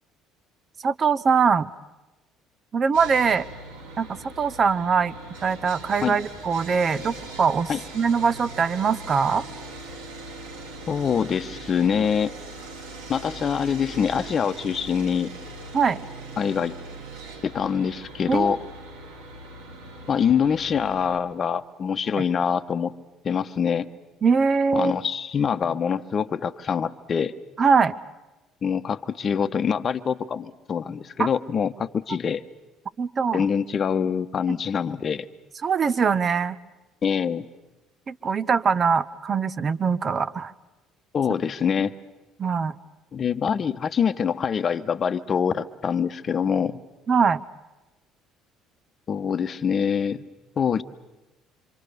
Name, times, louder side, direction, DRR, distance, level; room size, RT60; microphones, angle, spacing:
voice 1, 0.8-1.7 2.7-3.4 4.0-5.1 5.4-9.4 15.7-16.0 18.3-18.5 24.2-24.9 27.6-27.9 31.2-31.3 33.0-33.4 35.6-36.6 38.1-40.5 42.4-42.7 47.1-47.4, right 5 dB, 35° right, 16 dB, 0.9 m, -22 dB
Sawing, 2.9-21.2, right 2 dB, 70° right, 2.3 m, -40 dB
voice 2, 10.9-12.3 13.1-15.3 16.4-16.8 17.4-18.6 20.1-22.9 23.2-23.9 24.7-27.3 28.6-32.4 33.3-35.3 37.0-37.5 41.1-41.9 43.1-46.8 49.1-50.2 50.6-50.8, left 7 dB, 40° left, 11 dB, 1.0 m, -25 dB
26.5 x 26.0 x 6.7 m, 1.1 s
figure-of-eight pair, 55°, 0 cm